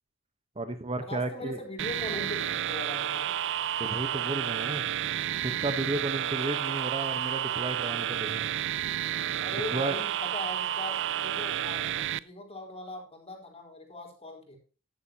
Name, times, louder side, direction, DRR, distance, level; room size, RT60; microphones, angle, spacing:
voice 1, 0.6-1.6 3.8-4.9 5.4-8.5 9.5-10.0, right 2 dB, 30° right, 9 dB, 1.1 m, -33 dB
voice 2, 1.1-3.4 9.4-14.6, left 2 dB, 30° left, 3 dB, 4.2 m, -40 dB
sound 1, 1.8-12.2, right 11 dB, 60° right, 0.5 m, -31 dB
14.0 x 11.5 x 2.9 m, 0.37 s
head